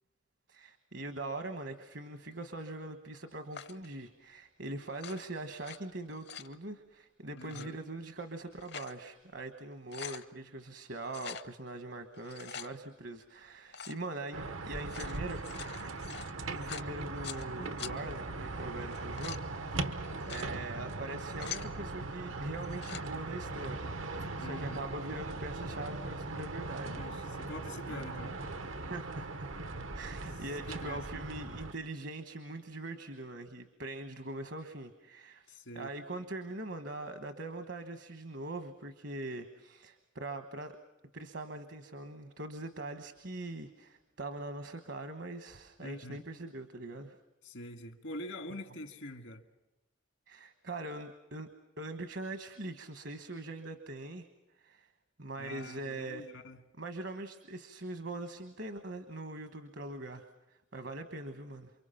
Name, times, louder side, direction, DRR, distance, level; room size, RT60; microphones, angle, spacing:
voice 1, 0.5-15.4 16.5-20.0 20.3-27.0 27.9-28.0 28.9-29.5 29.9-40.8 41.1-47.2 50.3-51.5 51.8-54.3 54.6-54.9 55.2-56.3 56.8-60.2 60.7-61.7, right 2 dB, 65° right, 8 dB, 1.3 m, -42 dB
sound 1, 3.5-3.9 4.9-5.8 6.1-6.5 7.4-7.7 8.4-9.0 9.4-9.5 9.7-10.3 11.1-11.5 12.1-12.7 13.7-14.0 14.7-17.4 17.8-17.9 18.8-19.4 20.1-20.5 21.1-21.7 22.6-23.1, left 8 dB, 55° left, 0.7 m, -45 dB
voice 2, 7.3-7.8 17.6-18.1 24.4-24.9 26.9-28.4 30.7-31.2 35.5-35.9 45.8-46.2 47.4-49.4 55.4-56.6, left 1 dB, 80° left, 7 dB, 1.9 m, -45 dB
sound 2, 14.3-31.7, right 2 dB, 90° right, 1.3 m, -40 dB
28.5 x 24.5 x 5.8 m, 0.99 s
head